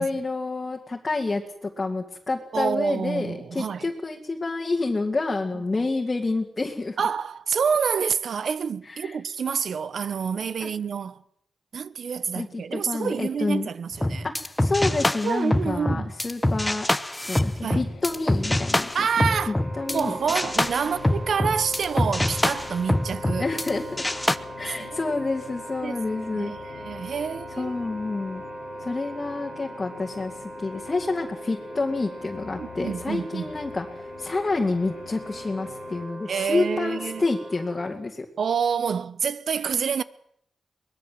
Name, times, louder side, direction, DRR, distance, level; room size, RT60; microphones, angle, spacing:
voice 1, 0.0-7.0 8.9-9.2 10.6-10.7 12.3-13.7 14.2-16.9 17.3-18.9 19.2-20.1 23.4-24.0 24.6-26.5 27.6-28.4 28.8-38.3, left 3 dB, 25° left, 2.3 m, -28 dB
voice 2, 2.5-3.9 5.5-5.9 7.0-11.2 11.7-14.3 15.2-16.1 17.6-17.9 18.9-19.5 19.9-23.5 24.8-25.1 25.8-26.0 26.3-27.8 32.6-33.5 36.3-37.2 38.4-40.0, right 6 dB, 65° right, 1.1 m, -28 dB
sound 1, 13.9-20.0 20.3-23.7 24.0-24.4, left 1 dB, 10° left, 1.0 m, -25 dB
sound 2, 17.6-36.1, left 8 dB, 90° left, 1.7 m, -45 dB
Wind instrument woodwind instrument, 19.3-37.9, right 1 dB, 20° right, 6.4 m, -40 dB
23.5 x 20.0 x 7.8 m
wide cardioid pair, 115°, 0 cm